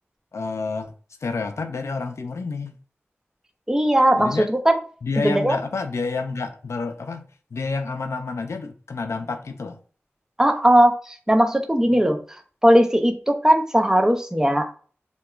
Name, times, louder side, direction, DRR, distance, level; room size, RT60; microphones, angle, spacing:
voice 1, 0.3-0.9 1.2-2.8 4.2-4.5 5.0-7.2 7.5-9.8 11.9-12.0, left 4 dB, 85° left, 0.4 m, -29 dB
voice 2, 3.7-4.8 5.2-5.6 10.4-12.2 12.6-14.7, equal, 10° right, 0.5 m, -18 dB
2.9 x 2.2 x 2.3 m
wide cardioid pair, 50°, 5 cm